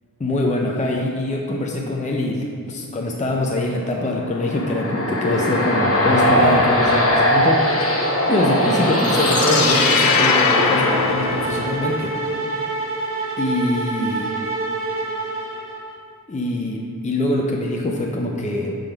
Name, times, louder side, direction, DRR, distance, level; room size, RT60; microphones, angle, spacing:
voice 1, 0.2-12.2 13.4-14.3 16.3-18.8, left 1 dB, 20° left, 0 dB, 0.6 m, -24 dB
sound 1, 4.1-11.6, equal, 40° left, 1.0 m, -20 dB
sound 2, 4.7-16.0, right 2 dB, 40° right, 1.2 m, -29 dB
sound 3, 9.0-12.1, left 5 dB, 80° left, 0.5 m, -21 dB
6.5 x 3.8 x 4.5 m, 2.4 s
wide cardioid pair, 55°, 34 cm